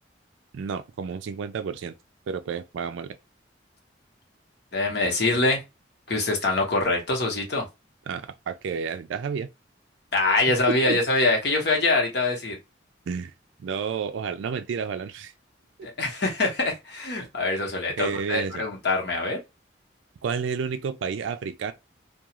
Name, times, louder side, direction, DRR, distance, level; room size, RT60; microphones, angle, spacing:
voice 1, 0.5-1.9 2.3-3.2 8.1-9.5 10.5-11.0 13.1-13.3 13.6-15.3 15.8-15.9 18.0-18.6 20.2-21.7, right 6 dB, 80° right, 0.3 m, -31 dB
voice 2, 4.7-5.6 6.1-7.7 10.1-12.6 15.8-19.4, left 2 dB, 55° left, 1.0 m, -24 dB
2.4 x 2.3 x 2.9 m
head